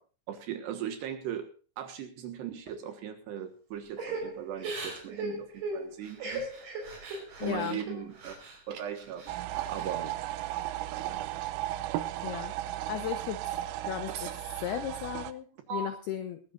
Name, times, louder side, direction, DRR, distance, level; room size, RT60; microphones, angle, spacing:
voice 1, 0.3-1.5 1.8-6.5 7.4-8.3 8.7-9.4 9.7-10.2 11.0-11.2 14.1-14.3 15.7-15.9, right 9 dB, 65° right, 8 dB, 3.1 m, -38 dB
Crying sobbing / Breathing, 4.0-8.6 9.0-9.9 10.3-11.1, right 2 dB, 40° right, 5.7 m, -38 dB
voice 2, 7.4-7.8 12.2-12.5 12.9-13.6 13.8-16.5, left 10 dB, 80° left, 9 dB, 2.3 m, -36 dB
sound 1, 9.3-15.3, right 14 dB, 90° right, 3.6 m, -35 dB
20.5 x 14.5 x 2.5 m, 0.35 s
omnidirectional pair, 5.9 m